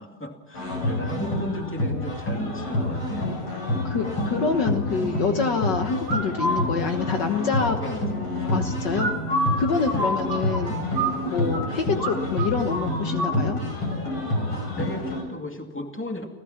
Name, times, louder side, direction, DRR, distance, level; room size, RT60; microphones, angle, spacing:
voice 1, 0.0-3.4 3.7-3.8 7.5-8.1 10.0-10.3 14.8-16.3, left 1 dB, 5° left, 3 dB, 2.2 m, -35 dB
sound 1, 0.5-15.2, left 1 dB, 80° left, 6.7 m, -28 dB
voice 2, 3.8-7.8 8.5-9.1 9.6-10.7 11.2-13.6, left 5 dB, 60° left, 5 dB, 1.9 m, -26 dB
sound 2, 6.1-6.6 8.9-11.7 12.0-12.1 12.4-13.4, right 1 dB, 65° right, 4.2 m, -27 dB
30.0 x 15.5 x 5.9 m, 1.1 s
omnidirectional pair, 2.3 m